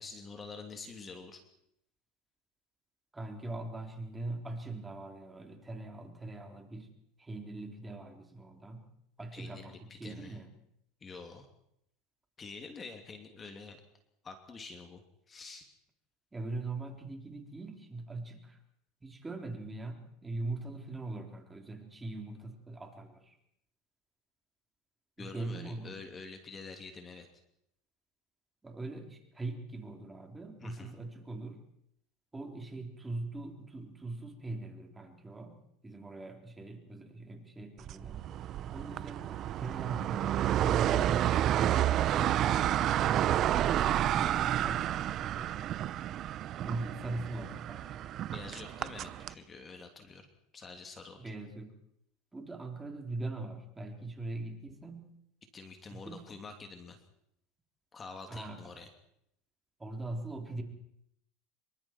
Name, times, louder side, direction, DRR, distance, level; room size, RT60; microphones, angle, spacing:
voice 1, 0.0-1.4 9.3-10.4 11.0-11.5 12.4-13.8 14.2-15.0 15.3-15.7 25.2-27.3 30.6-31.0 48.3-50.3 50.5-51.3 55.5-57.0 57.9-58.9, left 4 dB, 25° left, 5 dB, 2.9 m, -47 dB
voice 2, 3.1-6.9 7.2-8.9 9.2-10.5 16.3-18.6 19.0-23.4 25.2-26.0 28.6-31.6 32.3-38.3 38.7-45.5 46.6-48.1 51.2-51.7 52.3-55.1 55.9-56.2 58.3-58.6 59.8-60.6, right 2 dB, 15° right, 3 dB, 3.8 m, -41 dB
sound 1, 37.9-49.3, right 12 dB, 45° right, 0.8 m, -30 dB
26.5 x 24.0 x 4.6 m, 0.75 s
supercardioid pair, 115°, 0 cm